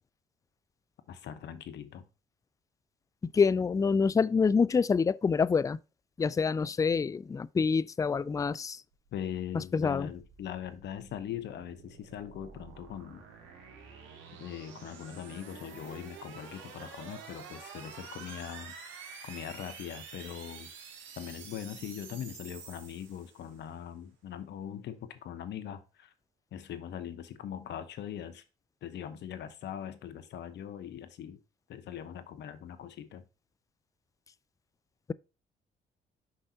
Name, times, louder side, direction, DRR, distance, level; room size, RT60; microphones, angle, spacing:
voice 1, 1.1-2.0 9.1-13.2 14.4-18.7 19.2-20.7 21.2-26.1 26.5-28.4 28.8-31.4 31.7-33.2, left 9 dB, 65° left, 0.9 m, -41 dB
voice 2, 3.2-5.8 6.2-8.8 9.5-10.1, left 5 dB, 15° left, 0.3 m, -26 dB
sound 1, 9.1-23.6, right 6 dB, 80° right, 1.8 m, -49 dB
6.3 x 5.6 x 2.8 m
supercardioid pair, 55°, 19 cm